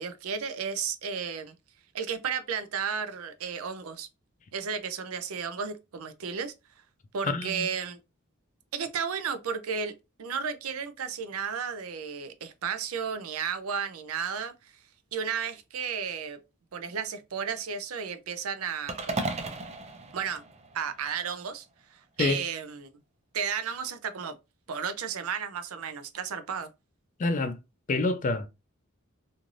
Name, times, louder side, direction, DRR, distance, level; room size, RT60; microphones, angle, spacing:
voice 1, 0.0-1.5 1.9-4.1 4.5-6.5 7.1-8.0 8.7-9.9 10.2-14.7 15.1-16.4 16.7-19.5 20.1-20.4 20.7-21.6 21.9-22.9 23.3-24.4 24.7-26.7, right 6 dB, 80° right, 0.5 m, -33 dB
voice 2, 7.2-7.7 22.2-22.4 27.2-27.6 27.9-28.5, left 3 dB, 35° left, 0.4 m, -27 dB
sound 1, 18.9-21.2, right 2 dB, 30° right, 0.5 m, -35 dB
3.1 x 2.6 x 2.5 m
head